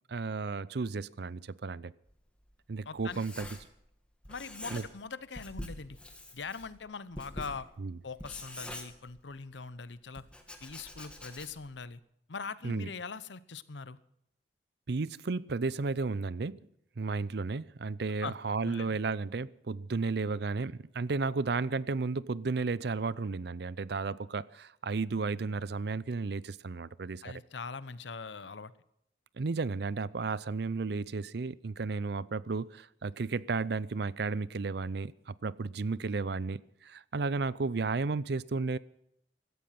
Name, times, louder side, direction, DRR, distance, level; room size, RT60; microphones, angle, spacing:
voice 1, 0.1-1.9 2.7-3.5 4.7-4.8 7.8-8.0 12.6-12.9 14.9-16.6 17.0-27.4 29.4-38.8, right 4 dB, 65° right, 0.6 m, -33 dB
Writing, 2.1-4.0 4.2-5.1 5.3-9.5 10.1-11.8, left 1 dB, 5° left, 2.3 m, -45 dB
voice 2, 2.9-3.2 4.3-6.0 6.3-7.7 8.0-10.2 10.6-12.0 12.3-14.0 18.2-18.4 18.6-19.0 27.2-28.7, left 4 dB, 85° left, 0.8 m, -42 dB
16.5 x 14.0 x 5.9 m
head